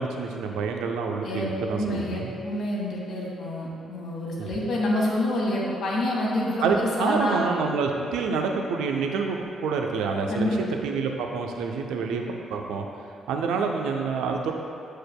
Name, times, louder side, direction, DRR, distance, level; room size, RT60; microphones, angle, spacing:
voice 1, 0.0-2.3 4.4-4.7 6.6-12.2 12.5-12.9 13.3-14.5, right 5 dB, 75° right, 2 dB, 0.5 m, -27 dB
voice 2, 1.2-7.4 10.3-10.5, left 1 dB, 65° left, -4 dB, 1.4 m, -27 dB
7.8 x 6.4 x 2.2 m, 2.6 s
hypercardioid pair, 45°, 0 cm